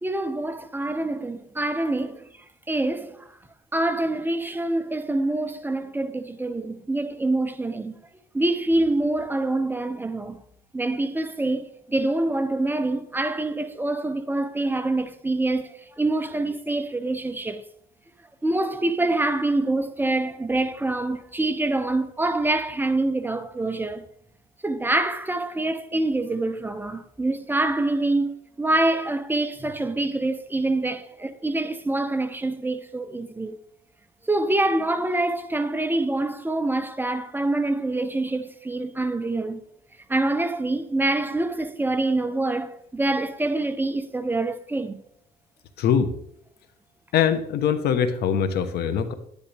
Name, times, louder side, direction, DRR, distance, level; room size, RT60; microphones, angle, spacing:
voice 1, 0.0-2.3 2.7-3.3 3.7-8.1 8.3-10.4 10.7-17.6 18.4-24.1 24.6-33.6 34.3-39.6 40.1-45.0, right 2 dB, 10° right, 0.8 m, -25 dB
voice 2, 45.8-46.1 47.1-49.1, left 7 dB, 70° left, 1.2 m, -22 dB
11.5 x 10.5 x 3.5 m
cardioid pair, 110°, 17 cm